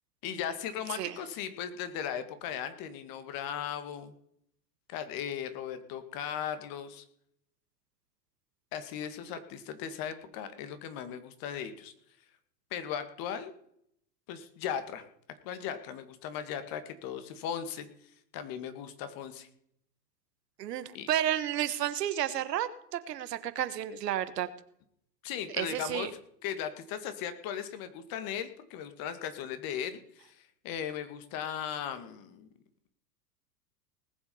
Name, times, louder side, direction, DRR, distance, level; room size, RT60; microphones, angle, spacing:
voice 1, 0.2-4.1 4.9-7.0 8.7-11.9 12.7-13.5 14.3-15.0 15.4-17.9 18.3-19.5 20.9-21.1 25.2-26.1 26.4-32.5, left 8 dB, 45° left, 10 dB, 2.1 m, -37 dB
voice 2, 20.6-24.5 25.5-26.1, right 11 dB, 75° right, 13 dB, 1.4 m, -31 dB
19.5 x 7.4 x 5.5 m, 0.69 s
hypercardioid pair, 110°, 48 cm